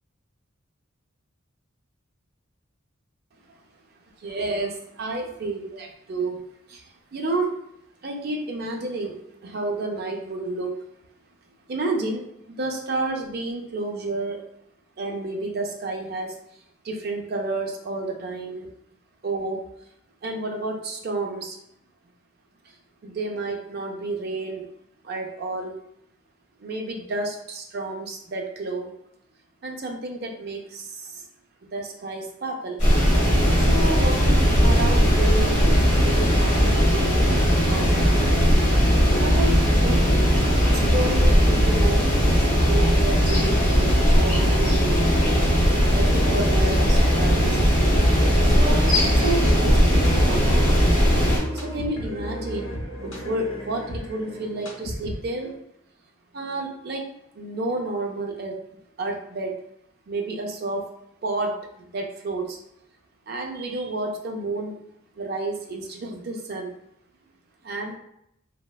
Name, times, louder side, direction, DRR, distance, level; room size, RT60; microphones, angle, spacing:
voice 1, 4.2-5.7 6.1-6.4 6.7-7.5 8.0-10.7 11.7-14.4 15.0-16.4 16.8-18.7 19.2-19.6 20.2-21.6 22.6-22.8 23.0-24.7 25.0-25.8 26.6-28.9 29.6-31.2 31.7-32.9 33.6-35.7 36.0-38.3 39.2-40.2 40.7-42.1 42.5-45.1 45.9-47.6 48.4-50.6 51.2-52.7 53.0-55.5 56.3-57.0 57.3-58.6 59.0-59.5 60.1-60.8 61.2-62.6 63.3-64.8 65.2-66.8 67.6-67.9, right 2 dB, 45° right, 1 dB, 0.4 m, -30 dB
sound 1, 32.8-51.4, equal, 35° left, 1.2 m, -18 dB
sound 2, 43.3-55.5, equal, 85° left, 0.7 m, -34 dB
3.1 x 2.0 x 2.2 m, 0.75 s
head